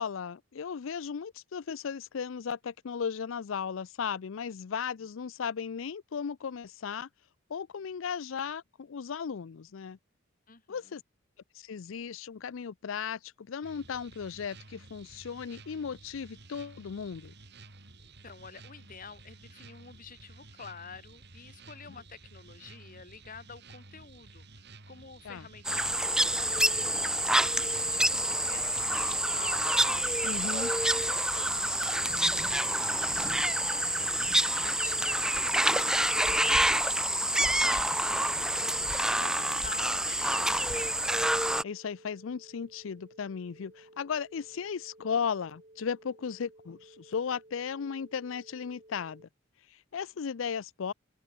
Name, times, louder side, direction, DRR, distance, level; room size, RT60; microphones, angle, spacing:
voice 1, 0.0-7.1 7.5-10.0 10.7-11.0 11.5-17.3 25.2-25.4 30.2-30.7 41.6-49.2 49.7-50.9, left 6 dB, 70° left, 0.5 m, -36 dB
voice 2, 10.5-11.0 18.0-24.5 24.9-30.1 30.9-32.2 32.4-41.0, left 5 dB, 45° left, 2.2 m, -49 dB
sound 1, 13.6-33.3, right 3 dB, 55° right, 4.0 m, -52 dB
sound 2, 25.6-41.6, right 1 dB, 5° right, 0.7 m, -27 dB
sound 3, 40.2-49.3, right 1 dB, 35° right, 7.3 m, -57 dB
open air
head